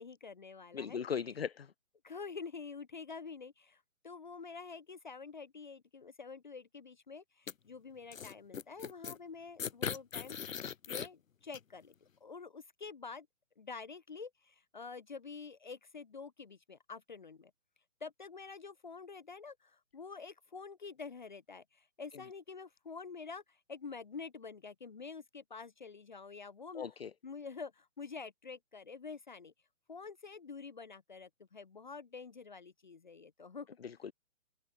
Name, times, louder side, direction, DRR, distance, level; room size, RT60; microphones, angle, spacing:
voice 1, 0.0-1.0 2.0-10.4 10.9-13.3 13.6-17.5 18.0-26.9 27.2-29.5 29.9-33.7 34.0-34.1, left 5 dB, 35° left, 1.1 m, -47 dB
voice 2, 0.7-1.7 26.7-27.1 33.8-34.1, left 7 dB, 55° left, 0.5 m, -38 dB
sound 1, 7.5-7.6 8.1-9.2 9.6-11.1 11.5-11.6, left 7 dB, 90° left, 1.0 m, -39 dB
hypercardioid pair, 180°, 38 cm